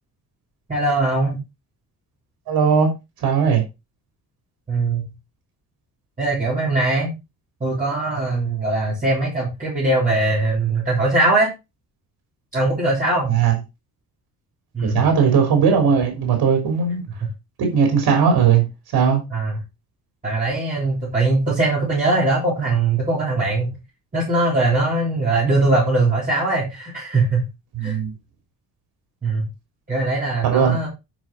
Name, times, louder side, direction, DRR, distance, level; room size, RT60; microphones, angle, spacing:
voice 1, 0.7-1.4 4.7-5.0 6.2-7.1 7.6-11.5 12.5-13.3 14.7-15.0 19.3-19.6 20.2-23.8 24.1-27.4 27.8-28.0 29.2-29.5 29.9-30.9, right 2 dB, 20° right, 4.0 m, -21 dB
voice 2, 2.5-2.9 3.2-3.6 13.3-13.6 14.8-17.0 17.6-18.6 18.9-19.2 27.8-28.1 30.4-30.8, right 6 dB, 85° right, 3.4 m, -18 dB
10.5 x 5.7 x 4.1 m
cardioid pair, 160°, 36 cm